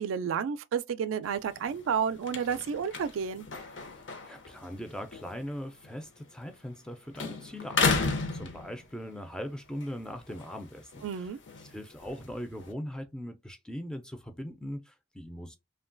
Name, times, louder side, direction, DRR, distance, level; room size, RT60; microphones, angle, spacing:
voice 1, 0.0-3.5 11.0-11.4, right 7 dB, 90° right, 0.3 m, -31 dB
sound 1, 1.2-6.9 7.1-9.2 9.6-12.7, left 4 dB, 65° left, 0.6 m, -35 dB
voice 2, 4.2-11.3 11.7-15.6, equal, 5° left, 0.3 m, -40 dB
3.0 x 2.2 x 2.4 m
head